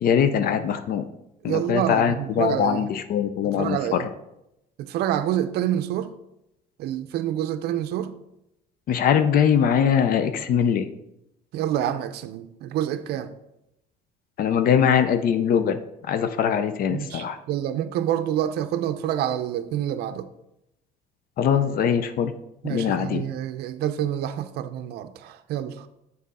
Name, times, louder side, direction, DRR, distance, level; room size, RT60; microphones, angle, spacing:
voice 1, 0.0-1.0 1.4-4.0 8.9-10.9 14.4-15.8 16.0-17.4 21.4-22.3 22.6-23.2, left 8 dB, 60° left, 0.5 m, -22 dB
voice 2, 1.4-2.9 3.4-4.1 4.8-6.1 6.8-8.1 11.5-13.3 16.9-20.3 22.6-25.9, right 11 dB, 75° right, 0.5 m, -27 dB
7.4 x 4.1 x 4.1 m
cardioid pair, 110°, 17 cm